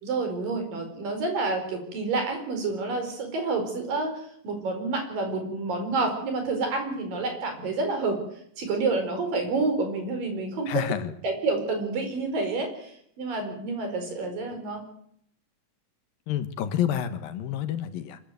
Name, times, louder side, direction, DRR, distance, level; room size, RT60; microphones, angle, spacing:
voice 1, 0.0-8.2 8.6-10.8 11.2-14.8, right 3 dB, 70° right, 5 dB, 6.3 m, -29 dB
voice 2, 10.7-11.1 16.3-18.2, left 10 dB, 80° left, 10 dB, 3.0 m, -29 dB
24.5 x 14.5 x 9.3 m, 0.69 s
omnidirectional pair, 4.1 m